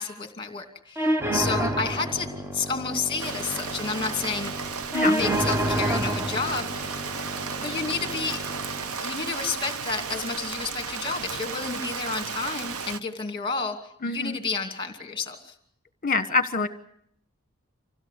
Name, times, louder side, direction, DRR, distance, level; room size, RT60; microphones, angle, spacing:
voice 1, 0.0-4.5 5.0-7.0 7.6-8.4 9.0-13.8 14.0-15.5, left 4 dB, 20° left, 5 dB, 2.6 m, -31 dB
sound 1, 1.0-9.0, right 1 dB, 10° right, 1.0 m, -29 dB
Rain, 3.2-13.0, right 5 dB, 75° right, 0.9 m, -34 dB
voice 2, 4.9-5.3 14.0-14.4 16.0-16.7, left 3 dB, 40° left, 12 dB, 1.3 m, -25 dB
25.5 x 16.0 x 8.3 m, 0.69 s
head